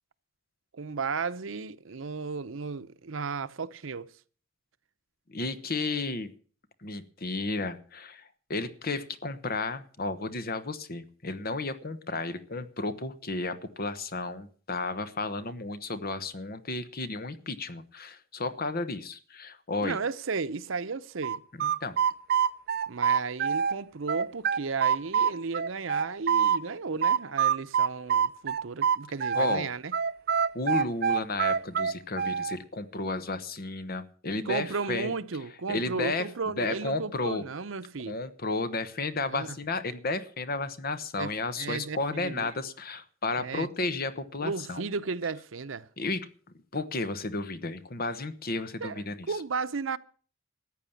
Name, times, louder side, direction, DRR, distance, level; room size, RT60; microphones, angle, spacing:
voice 1, 0.7-4.1 19.8-21.4 22.9-29.9 34.4-38.2 39.3-39.6 41.2-41.3 41.6-42.5 43.4-43.7 44.4-45.9 48.8-50.0, right 4 dB, 85° right, 0.7 m, -34 dB
voice 2, 5.3-6.3 6.8-8.2 8.5-20.0 21.6-22.0 29.3-29.7 30.5-35.1 35.7-36.3 36.6-37.4 38.1-44.9 46.0-46.3 46.7-49.3, left 3 dB, 50° left, 1.1 m, -33 dB
sound 1, 21.2-23.8 24.1-26.6 27.0-29.6 29.9-32.6, right 7 dB, 55° right, 0.5 m, -25 dB
14.5 x 9.3 x 7.1 m
head